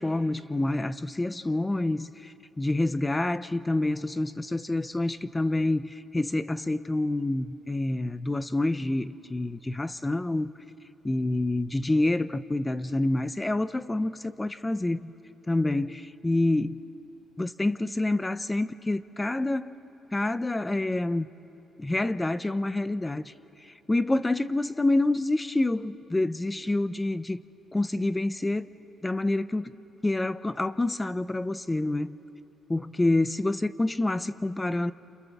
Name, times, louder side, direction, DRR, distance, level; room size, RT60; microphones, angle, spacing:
voice 1, 0.0-10.5 11.0-15.1 15.5-16.8 17.4-19.7 20.1-21.3 21.8-23.3 23.6-27.4 27.7-28.7 29.0-29.7 30.0-32.2 32.7-34.9, left 2 dB, 15° left, 13 dB, 0.9 m, -27 dB
28.5 x 28.5 x 7.3 m, 2.8 s
cardioid pair, 90°, 0 cm